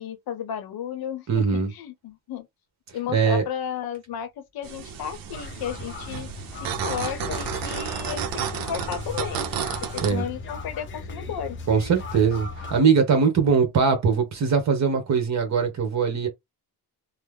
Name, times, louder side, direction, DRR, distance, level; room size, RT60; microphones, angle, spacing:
voice 1, 0.0-2.5 2.9-6.3 6.6-9.5 9.9-11.6, left 8 dB, 65° left, 0.8 m, -33 dB
voice 2, 1.3-1.7 3.1-3.4 10.0-10.2 11.7-16.3, right 5 dB, 45° right, 1.2 m, -21 dB
sound 1, 4.6-10.1, right 7 dB, 60° right, 0.7 m, -32 dB
sound 2, 5.3-12.8, left 3 dB, 30° left, 0.6 m, -37 dB
3.2 x 2.1 x 3.3 m
cardioid pair, 165°, 39 cm